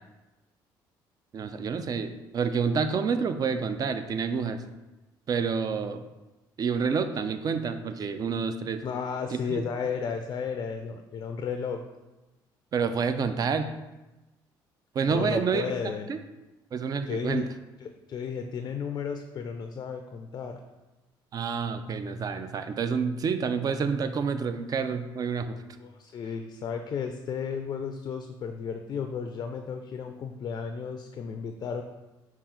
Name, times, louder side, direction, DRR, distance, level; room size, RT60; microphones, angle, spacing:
voice 1, 1.3-4.6 5.3-6.0 6.6-8.8 9.5-9.6 12.7-13.7 14.9-15.7 16.1-16.2 16.7-17.5 21.3-25.6, right 5 dB, 45° right, 9 dB, 0.4 m, -28 dB
voice 2, 8.8-11.8 15.1-16.1 17.1-17.5 17.8-20.6 25.8-31.8, left 6 dB, 45° left, 6 dB, 0.4 m, -33 dB
5.5 x 2.3 x 3.7 m, 1.1 s
cardioid pair, 90°, 9 cm